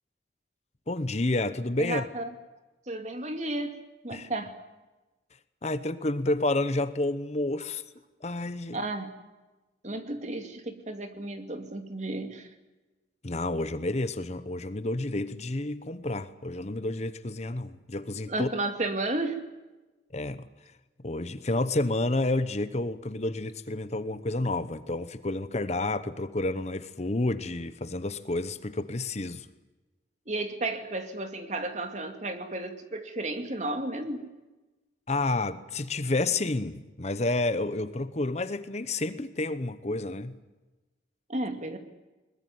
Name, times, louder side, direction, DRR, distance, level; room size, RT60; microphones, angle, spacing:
voice 1, 0.9-2.0 4.1-4.3 5.6-7.8 8.2-8.8 13.2-18.5 20.1-20.5 21.0-29.5 35.1-40.4, left 2 dB, 35° left, 0.9 m, -30 dB
voice 2, 1.8-2.3 2.9-3.8 4.0-4.5 8.7-9.1 9.8-12.5 18.3-19.5 30.3-34.3 41.3-41.8, right 2 dB, 40° right, 2.5 m, -33 dB
22.0 x 20.5 x 9.3 m
head